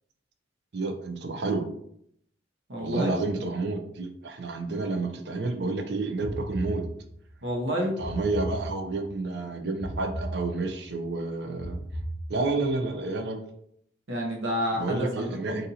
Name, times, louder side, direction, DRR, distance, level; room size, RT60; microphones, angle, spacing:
voice 1, 0.7-1.6 2.8-6.8 8.0-11.8 12.3-13.4 14.8-15.7, right 3 dB, 55° right, 4 dB, 0.5 m, -30 dB
voice 2, 2.7-3.1 7.4-7.9 14.1-15.6, equal, 80° right, 0 dB, 0.9 m, -29 dB
sound 1, 6.2-7.4 8.0-9.2 9.8-10.9 11.6-12.7, right 1 dB, 30° left, 0.5 m, -36 dB
2.6 x 2.6 x 4.0 m, 0.72 s
head